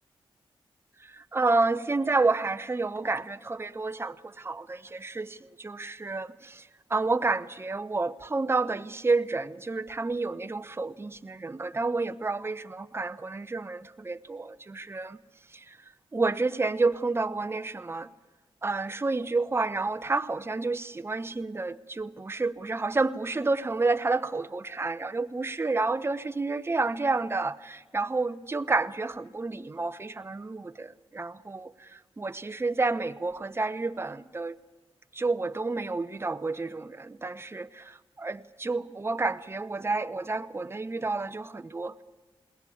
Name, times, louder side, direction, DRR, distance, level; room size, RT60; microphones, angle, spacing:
voice 1, 1.0-6.6 6.9-15.2 15.5-15.8 16.1-18.1 18.6-34.6 35.1-42.0, right 3 dB, 25° right, 0.7 m, -30 dB
21.0 x 18.0 x 8.5 m
cardioid pair, 65°, 10 cm